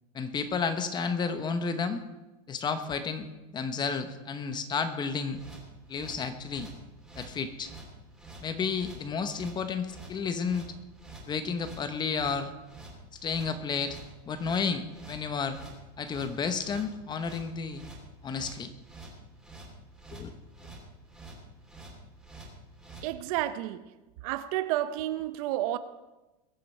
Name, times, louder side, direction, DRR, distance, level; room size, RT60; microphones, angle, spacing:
voice 1, 0.1-2.0 2.5-3.3 3.5-5.4 5.9-6.7 7.2-7.7 8.4-10.7 11.3-12.5 13.2-14.0 14.3-15.6 16.0-17.8 18.2-18.7 20.1-20.3, left 5 dB, 20° left, 0.9 m, -31 dB
sound 1, 5.3-23.1, right 2 dB, ahead, 3.0 m, -48 dB
voice 2, 23.0-23.9 24.2-25.8, right 14 dB, 60° right, 0.8 m, -31 dB
21.5 x 7.5 x 5.6 m
supercardioid pair, 140°, 21 cm